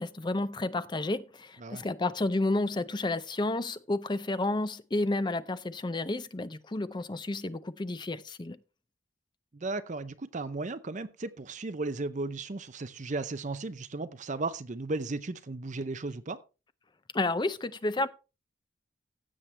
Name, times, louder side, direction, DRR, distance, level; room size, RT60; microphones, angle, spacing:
voice 1, 0.0-8.6 17.1-18.1, left 2 dB, 20° left, 0.5 m, -31 dB
voice 2, 9.5-16.4, right 3 dB, 35° right, 0.6 m, -35 dB
15.5 x 7.4 x 3.3 m
head